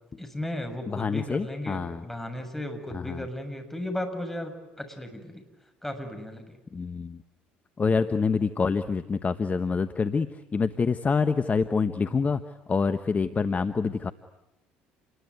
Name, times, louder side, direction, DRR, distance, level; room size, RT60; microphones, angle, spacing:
voice 1, 0.2-4.5 4.8-5.4 5.8-6.6, left 1 dB, 5° left, 6 dB, 6.9 m, -35 dB
voice 2, 0.9-2.0 2.9-3.2 6.7-7.2 7.8-10.3 10.5-12.4 12.7-14.1, left 5 dB, 30° left, 10 dB, 1.2 m, -26 dB
29.0 x 21.5 x 9.6 m, 0.96 s
hypercardioid pair, 60°, 5 cm